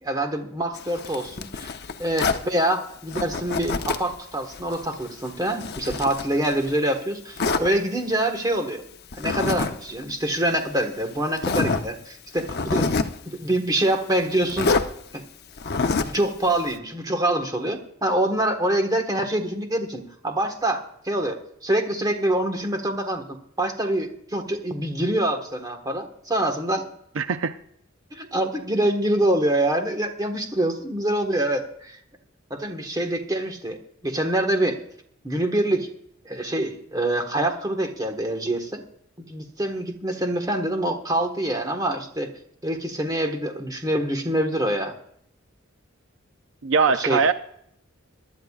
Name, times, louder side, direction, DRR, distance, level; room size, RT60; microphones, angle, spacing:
voice 1, 0.0-1.7 2.0-8.8 9.2-12.9 13.3-14.8 16.1-23.2 23.6-26.9 28.1-32.0 32.5-33.8 34.0-34.8 35.2-35.9 36.2-38.8 39.2-42.3 42.6-45.0 46.9-47.2, right 1 dB, 20° right, 1.5 m, -25 dB
Zipper (clothing), 0.8-2.5 3.1-4.1 4.5-6.8 7.4-7.7 9.1-9.7 10.0-10.1 10.8-10.9 11.4-11.9 12.4-13.2 14.5-14.9 15.6-16.2, left 4 dB, 50° left, 0.8 m, -26 dB
voice 2, 27.2-27.5 46.6-47.3, right 5 dB, 65° right, 0.5 m, -21 dB
23.0 x 11.5 x 2.4 m
head